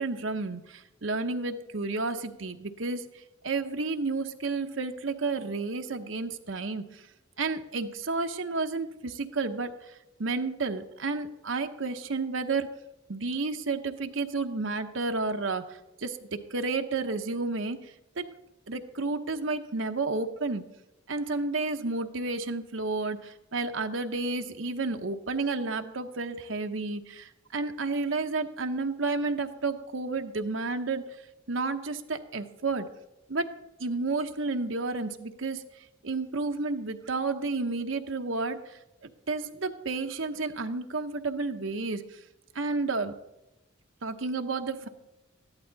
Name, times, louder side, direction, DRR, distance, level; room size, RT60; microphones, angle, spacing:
voice 1, 0.0-3.1 3.4-7.0 7.4-9.7 10.2-12.7 13.1-17.8 18.2-18.3 18.7-20.7 21.1-31.1 31.5-32.9 33.3-33.5 33.8-35.6 36.0-42.0 42.5-43.1 44.0-44.9, right 3 dB, 70° right, 6 dB, 1.0 m, -31 dB
14.0 x 11.0 x 4.0 m, 0.94 s
head